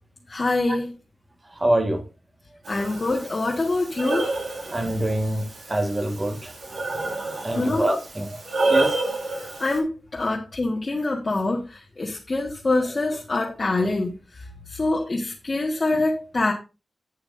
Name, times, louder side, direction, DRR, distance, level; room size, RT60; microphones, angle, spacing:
voice 1, 0.3-0.9 2.7-4.3 7.5-7.9 9.6-14.2 14.7-16.5, left 2 dB, 30° left, -2 dB, 1.6 m, -25 dB
voice 2, 1.5-2.0 4.6-6.8 7.4-8.4 8.7-9.0 13.1-13.2, right 1 dB, 20° right, 5 dB, 1.7 m, -25 dB
Breathing, 2.6-9.8, right 2 dB, 75° right, 4.2 m, -29 dB
12.5 x 8.7 x 2.7 m, 0.29 s
wide cardioid pair, 155°, 0 cm